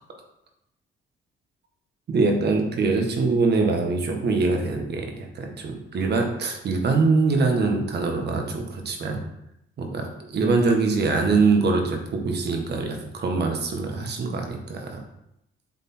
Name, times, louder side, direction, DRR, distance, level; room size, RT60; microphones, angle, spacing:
voice 1, 2.1-9.2 9.8-15.0, right 3 dB, 55° right, 3 dB, 1.5 m, -23 dB
8.0 x 3.6 x 4.4 m, 0.81 s
cardioid pair, 90°, 20 cm